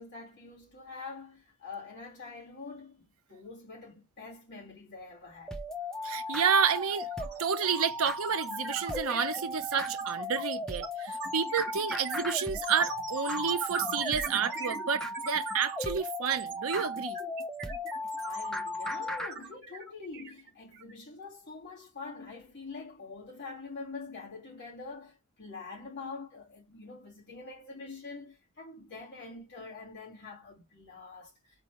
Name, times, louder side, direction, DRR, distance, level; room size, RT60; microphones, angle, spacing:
voice 1, 0.0-5.6 18.2-31.3, left 4 dB, 55° left, 2.6 m, -45 dB
sound 1, 5.5-19.3, left 1 dB, 5° left, 0.5 m, -37 dB
voice 2, 6.0-7.1 7.4-17.2, right 6 dB, 75° right, 0.7 m, -30 dB
sound 2, 6.1-6.3 6.6-20.9, right 5 dB, 55° right, 1.2 m, -40 dB
4.2 x 2.6 x 3.0 m
head